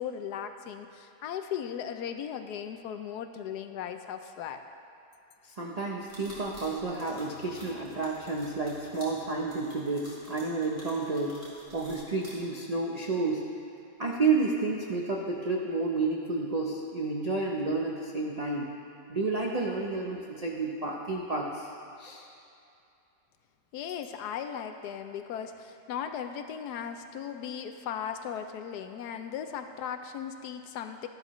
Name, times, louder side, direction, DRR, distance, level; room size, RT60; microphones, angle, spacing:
voice 1, 0.0-4.6 23.7-31.1, left 8 dB, 75° left, 8 dB, 1.1 m, -37 dB
voice 2, 5.4-11.4 11.7-13.4 14.0-18.7 19.1-21.7 22.0-22.2, right 3 dB, 70° right, -2 dB, 0.3 m, -30 dB
sound 1, 6.0-12.3, equal, 20° right, 2.8 m, -50 dB
12.0 x 11.5 x 3.1 m, 2.6 s
omnidirectional pair, 1.9 m